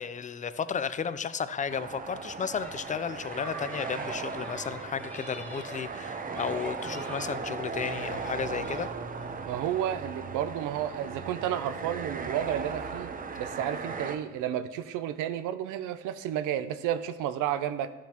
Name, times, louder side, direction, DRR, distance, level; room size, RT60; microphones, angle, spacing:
voice 1, 0.0-8.9, left 6 dB, 25° left, 13 dB, 0.4 m, -33 dB
sound 1, 1.7-14.2, right 4 dB, 30° right, 0.6 m, -37 dB
sound 2, 2.6-9.7, left 1 dB, 5° left, 1.2 m, -48 dB
voice 2, 9.5-13.1 13.4-17.9, right 10 dB, 90° right, 11 dB, 0.5 m, -31 dB
13.0 x 7.4 x 2.9 m, 1.2 s
cardioid pair, 90°, 30 cm